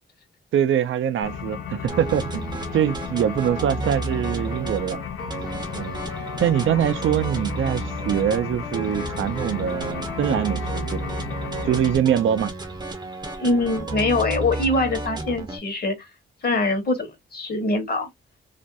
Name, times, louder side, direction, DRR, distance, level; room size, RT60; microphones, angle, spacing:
voice 1, 0.5-5.0 5.8-6.0 6.4-11.0 11.6-12.5, right 9 dB, 70° right, 0.4 m, -23 dB
sound 1, 1.2-11.9, left 7 dB, 75° left, 0.5 m, -34 dB
sound 2, 1.9-15.6, right 3 dB, 20° right, 0.6 m, -32 dB
voice 2, 13.4-16.0 16.4-18.1, left 2 dB, 45° left, 1.0 m, -23 dB
2.4 x 2.2 x 2.6 m
cardioid pair, 95°, 21 cm